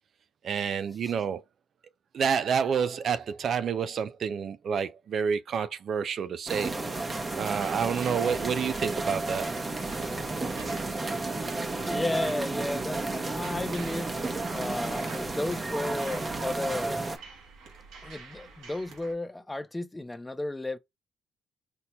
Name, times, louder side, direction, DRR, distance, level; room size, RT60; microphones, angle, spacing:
voice 1, 0.4-1.4 2.1-6.7 7.4-9.5, right 7 dB, 60° right, 0.3 m, -29 dB
sound 1, 6.5-17.2, right 2 dB, 25° right, 0.8 m, -32 dB
sound 2, 7.0-19.1, right 4 dB, 85° right, 1.2 m, -47 dB
voice 2, 11.8-14.2 14.5-17.1 18.0-20.8, left 2 dB, 15° left, 0.5 m, -33 dB
4.3 x 2.8 x 2.2 m
cardioid pair, 90°, 0 cm